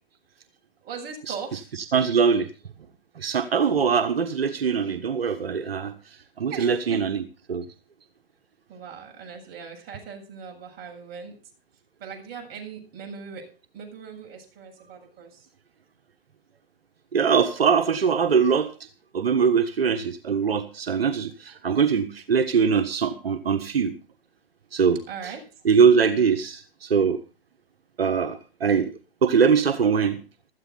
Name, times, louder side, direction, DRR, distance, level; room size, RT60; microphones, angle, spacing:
voice 1, 0.8-1.8 6.5-7.0 8.7-11.3 12.0-13.4 13.7-15.5 25.1-25.4, right 6 dB, 30° right, 2 dB, 7.6 m, -39 dB
voice 2, 1.9-2.5 3.2-5.9 6.4-7.2 7.5-7.6 17.1-18.7 19.1-23.9 24.7-25.0 25.2-25.3 25.6-27.2 28.0-28.9 29.2-30.2, right 6 dB, 85° right, 7 dB, 1.5 m, -22 dB
16.5 x 14.0 x 4.0 m, 0.34 s
hypercardioid pair, 125°, 29 cm